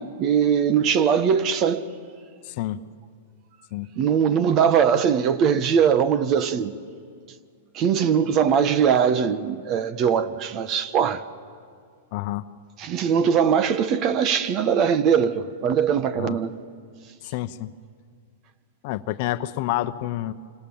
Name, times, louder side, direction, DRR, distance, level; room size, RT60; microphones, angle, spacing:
voice 1, 0.0-1.9 4.0-6.7 7.7-11.2 12.8-16.5, right 7 dB, 35° right, 1.3 m, -21 dB
voice 2, 2.4-2.8 3.7-3.9 12.1-12.4 16.2-16.4 17.2-17.7 18.8-20.3, left 15 dB, 50° left, 0.9 m, -28 dB
27.0 x 26.0 x 7.3 m
hypercardioid pair, 125°, 0 cm